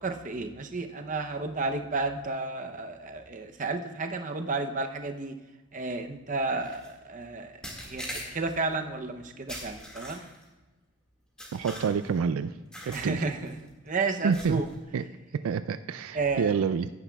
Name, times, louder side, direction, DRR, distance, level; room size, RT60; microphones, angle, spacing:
voice 1, 0.0-5.3 5.7-10.2 12.9-13.5 13.8-14.7 16.1-16.5, right 3 dB, 35° right, 6 dB, 0.7 m, -32 dB
sound 1, 6.6-6.9 7.6-8.6 9.5-10.4 11.4-12.2 12.7-13.1 13.4-13.7 14.3-14.8, equal, 5° left, 1.9 m, -41 dB
voice 2, 11.5-12.6 12.9-13.2 14.2-14.6 14.9-15.1 15.3-16.9, right 6 dB, 75° right, 11 dB, 0.3 m, -28 dB
16.5 x 9.8 x 2.3 m, 1.2 s
head